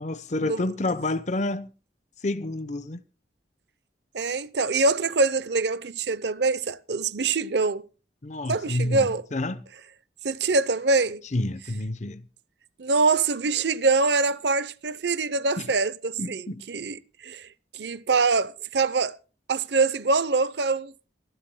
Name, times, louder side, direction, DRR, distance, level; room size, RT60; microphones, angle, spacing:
voice 1, 0.0-1.7 2.2-3.0 8.2-9.6 11.3-12.3 15.6-15.7 16.2-16.6, left 2 dB, 40° left, 0.8 m, -29 dB
voice 2, 4.1-7.9 8.5-9.2 10.2-11.2 12.8-17.5 17.7-19.2 19.5-20.9, right 3 dB, 70° right, 0.7 m, -24 dB
27.0 x 12.5 x 2.2 m
head